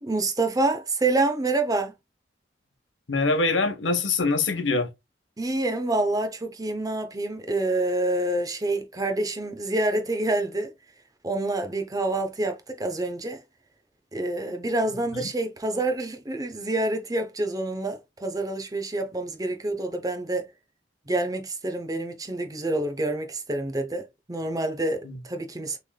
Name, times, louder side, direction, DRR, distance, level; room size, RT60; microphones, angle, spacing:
voice 1, 0.0-1.9 5.4-10.7 11.2-13.4 14.1-20.5 21.1-25.8, right 2 dB, 20° right, 0.8 m, -27 dB
voice 2, 3.1-4.9 15.1-15.2 25.0-25.2, left 3 dB, 85° left, 1.0 m, -24 dB
6.0 x 3.4 x 2.2 m
head